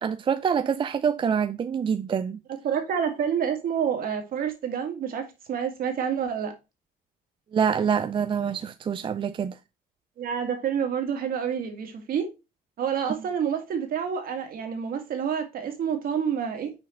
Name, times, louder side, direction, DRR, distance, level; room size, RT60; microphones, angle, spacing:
voice 1, 0.0-2.4 7.5-9.5, right 7 dB, 30° right, 0.4 m, -26 dB
voice 2, 2.5-6.5 10.2-12.3 12.8-16.7, right 8 dB, 60° right, 2.0 m, -28 dB
6.0 x 4.5 x 4.4 m
cardioid pair, 110°, 17 cm